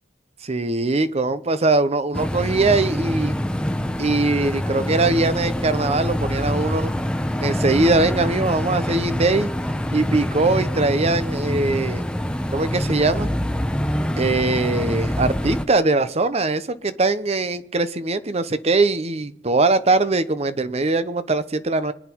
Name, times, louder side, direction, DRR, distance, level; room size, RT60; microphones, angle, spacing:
voice 1, 0.5-3.3 4.0-7.0 7.4-9.5 9.9-12.0 12.5-13.3 14.2-21.9, right 3 dB, 35° right, 13 dB, 0.8 m, -21 dB
sound 1, 2.1-15.6, equal, 5° left, 0.8 m, -25 dB
25.0 x 9.2 x 4.6 m, 0.76 s
head